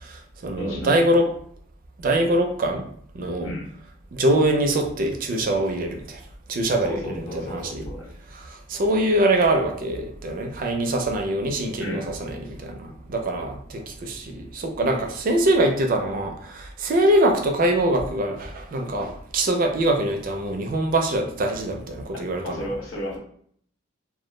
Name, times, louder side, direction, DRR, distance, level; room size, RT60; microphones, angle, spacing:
voice 1, 0.0-1.3 2.0-2.8 3.1-3.5 4.1-6.2 6.5-7.0 7.3-7.8 8.4-22.6, right 1 dB, 45° right, 4 dB, 0.4 m, -23 dB
voice 2, 0.6-1.0 3.4-3.7 6.8-8.2 11.8-12.1 22.3-23.2, equal, 90° left, -3 dB, 0.8 m, -33 dB
2.2 x 2.0 x 3.1 m, 0.63 s
head